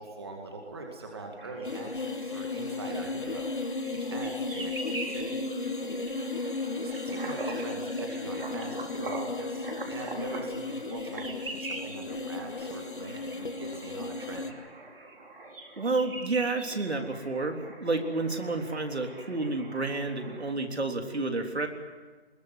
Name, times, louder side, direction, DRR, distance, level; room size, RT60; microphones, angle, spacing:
voice 1, 0.0-3.5 3.9-5.5 6.8-14.6, right 2 dB, 25° right, 1 dB, 2.2 m, -42 dB
sound 1, 1.4-20.5, right 2 dB, 55° right, 3.8 m, -43 dB
sound 2, 1.6-14.5, left 3 dB, 50° left, 1.7 m, -35 dB
voice 2, 15.8-21.7, right 3 dB, 70° right, 4 dB, 3.6 m, -30 dB
21.5 x 19.0 x 9.6 m, 1.3 s
figure-of-eight pair, 175°, 33 cm